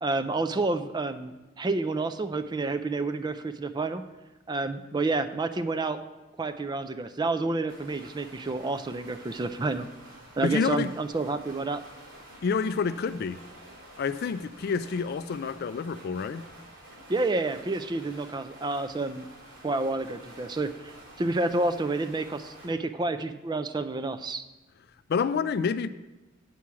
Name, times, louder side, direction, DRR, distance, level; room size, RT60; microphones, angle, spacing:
voice 1, 0.0-4.0 4.5-6.0 6.4-9.9 10.4-11.8 17.1-19.3 19.6-24.5, right 3 dB, 20° right, 10 dB, 0.4 m, -29 dB
sound 1, 7.7-22.7, right 1 dB, 85° right, 3.7 m, -50 dB
voice 2, 10.4-10.9 12.4-13.4 14.0-16.5 25.1-25.9, left 5 dB, 50° left, 14 dB, 0.3 m, -28 dB
8.4 x 6.2 x 5.7 m, 1.1 s
head